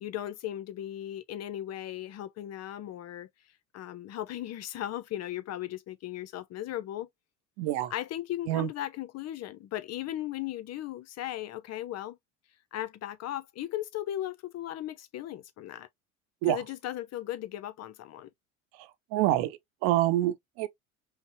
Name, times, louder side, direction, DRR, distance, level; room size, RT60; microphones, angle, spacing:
voice 1, 0.0-3.3 3.7-7.1 7.9-12.2 12.7-15.9 16.4-18.3, left 13 dB, 35° left, 0.5 m, -37 dB
voice 2, 7.6-7.9 8.5-8.7 16.4-16.6 19.1-20.7, right 14 dB, 55° right, 0.7 m, -26 dB
5.3 x 2.1 x 2.7 m
hypercardioid pair, 70°, 45 cm